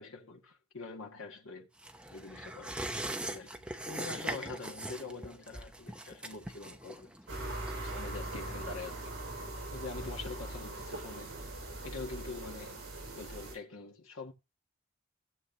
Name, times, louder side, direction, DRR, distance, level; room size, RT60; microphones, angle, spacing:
voice 1, 0.0-1.7 2.1-2.8 3.3-7.2 7.8-9.1 9.7-11.4 11.8-12.8 13.1-14.3, left 3 dB, 75° left, 2.0 m, -44 dB
sound 1, 1.8-8.9 9.2-9.3, right 1 dB, 5° right, 0.8 m, -41 dB
sound 2, 7.3-13.6, right 2 dB, 50° right, 6.2 m, -41 dB
16.0 x 7.5 x 2.9 m
head